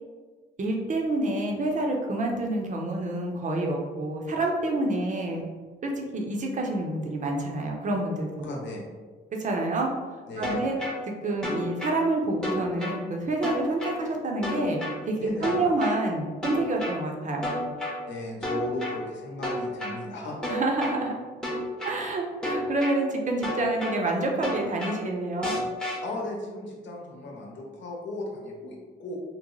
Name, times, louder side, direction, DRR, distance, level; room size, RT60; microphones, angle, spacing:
voice 1, 0.6-5.4 5.8-8.5 9.4-9.9 10.4-10.8 11.2-14.8 15.1-17.6 20.5-21.2 21.8-25.5, right 2 dB, 40° right, 1 dB, 0.7 m, -28 dB
voice 2, 8.4-8.9 10.3-10.7 15.2-15.6 18.1-20.4 26.0-29.1, left 2 dB, 65° left, -1 dB, 0.9 m, -36 dB
sound 1, 10.4-11.0 11.4-12.0 12.4-13.0 13.4-14.0 14.4-15.0 15.4-16.0 16.4-17.0 17.4-18.0 18.4-19.0 19.4-20.0 20.4-21.0 21.4-22.0 22.4-23.0 23.4-24.0 24.4-25.0 25.4-26.0, left 1 dB, 5° left, 0.8 m, -31 dB
3.1 x 2.1 x 3.7 m, 1.4 s
cardioid pair, 90°, 20 cm